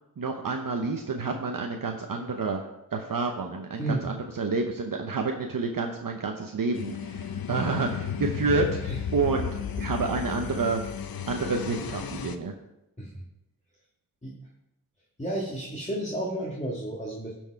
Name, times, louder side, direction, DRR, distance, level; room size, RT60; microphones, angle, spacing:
voice 1, 0.2-2.6 2.9-9.5 9.8-10.8 11.3-12.5, right 4 dB, 65° right, 3 dB, 0.8 m, -29 dB
sound 1, 6.7-12.4, left 8 dB, 75° left, 0.7 m, -33 dB
voice 2, 15.2-17.4, right 1 dB, 20° left, -4 dB, 1.8 m, -32 dB
12.0 x 4.6 x 4.6 m, 0.89 s
cardioid pair, 45°, 36 cm